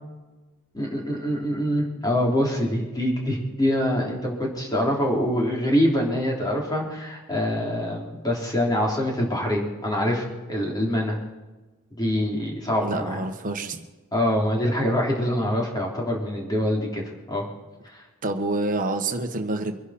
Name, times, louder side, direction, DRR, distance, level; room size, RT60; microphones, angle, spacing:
voice 1, 0.7-11.2 12.0-13.2 14.1-17.4 17.9-18.0, equal, 20° left, -2 dB, 3.5 m, -25 dB
voice 2, 12.8-13.9 18.2-19.8, right 2 dB, 40° right, 4 dB, 1.4 m, -27 dB
24.5 x 11.0 x 4.4 m, 1.2 s
head